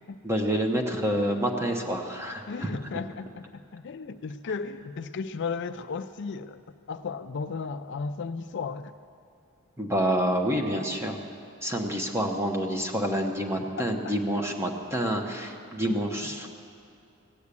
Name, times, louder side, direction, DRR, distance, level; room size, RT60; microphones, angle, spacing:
voice 1, 0.2-2.7 9.8-11.2 11.6-16.5, equal, 10° right, 2 dB, 1.1 m, -28 dB
voice 2, 2.5-6.6 6.9-8.9 14.0-14.2 15.9-16.5, left 5 dB, 55° left, 10 dB, 0.4 m, -35 dB
16.5 x 8.4 x 8.4 m, 2.6 s
head